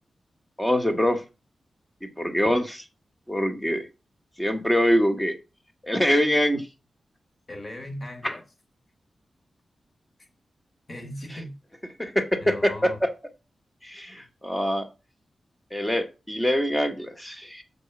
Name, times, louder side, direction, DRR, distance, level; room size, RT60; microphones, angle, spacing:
voice 1, 0.6-1.2 2.0-2.9 3.3-3.9 4.4-5.3 5.8-6.7 8.2-8.3 12.0-13.1 13.8-14.9 15.7-17.6, equal, 10° left, 1.2 m, -24 dB
voice 2, 7.5-8.4 10.2-10.3 10.9-11.6 12.4-13.0, left 1 dB, 35° left, 1.7 m, -38 dB
7.0 x 4.2 x 5.9 m
wide cardioid pair, 140°, 0 cm